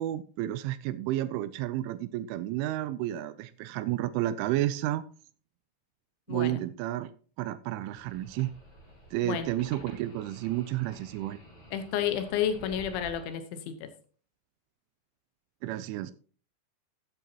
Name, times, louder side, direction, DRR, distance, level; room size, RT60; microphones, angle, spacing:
voice 1, 0.0-5.0 6.3-7.1 7.4-8.5 9.1-11.4 15.6-16.1, right 14 dB, 85° right, 2.9 m, -31 dB
voice 2, 6.3-6.6 9.2-9.5 11.7-13.9, left 9 dB, 75° left, 3.2 m, -31 dB
sound 1, 7.9-13.3, right 1 dB, 10° left, 5.3 m, -50 dB
13.5 x 9.3 x 2.9 m
omnidirectional pair, 5.8 m